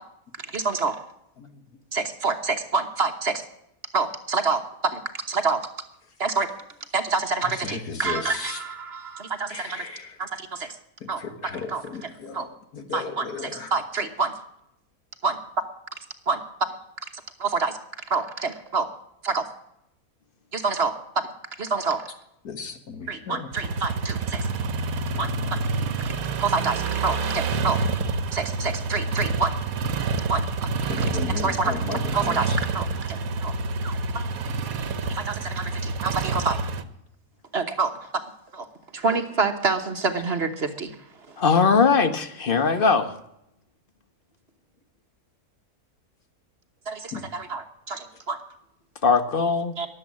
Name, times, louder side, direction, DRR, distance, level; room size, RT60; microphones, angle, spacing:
voice 1, 0.5-1.0 1.9-3.4 3.9-5.7 6.2-6.5 6.9-9.9 10.2-10.8 11.1-11.2 11.7-11.8 12.3-12.5 12.9-14.3 15.2-15.3 16.3-16.4 17.4-17.8 18.1-18.9 19.2-19.5 20.5-21.2 21.6-22.1 23.1-24.5 25.2-25.3 26.4-27.8 28.3-29.5 30.3-30.4 31.4-33.5 33.8-34.8 35.1-36.6 37.5-38.2 38.5-38.7 38.9-41.0 41.3-41.4 46.9-48.4 49.8-49.9, right 4 dB, 45° right, 6 dB, 1.3 m, -27 dB
voice 2, 7.4-8.6 9.5-10.2 10.6-10.7 11.0-13.7 22.4-23.5 30.9-32.6 47.1-47.3, left 5 dB, 85° left, 6 dB, 2.2 m, -35 dB
sound 1, 23.5-36.8, right 4 dB, 70° right, 1.4 m, -28 dB
voice 3, 41.4-43.1 49.0-49.7, left 5 dB, 40° left, 9 dB, 1.2 m, -20 dB
21.5 x 8.0 x 7.4 m, 0.81 s
omnidirectional pair, 1.6 m